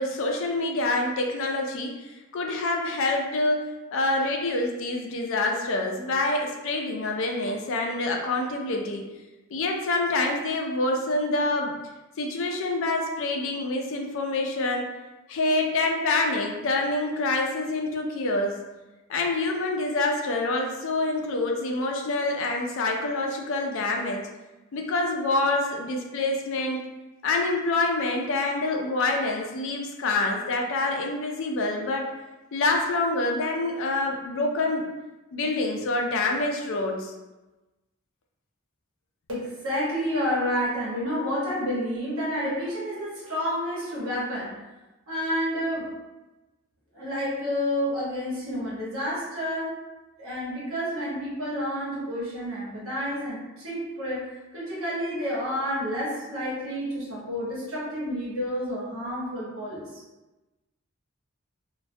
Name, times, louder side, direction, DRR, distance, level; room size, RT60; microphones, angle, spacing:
voice 1, 0.0-9.0 9.5-11.7 12.2-14.9 15.3-18.6 19.1-24.3 24.7-26.8 27.2-32.1 32.5-34.9 35.3-37.1, left 2 dB, 65° left, 2 dB, 0.4 m, -26 dB
voice 2, 39.3-44.5 45.1-45.9 46.9-49.7 50.2-54.3 54.5-60.0, equal, 65° right, -7 dB, 1.0 m, -29 dB
2.2 x 2.1 x 2.6 m, 1.1 s
head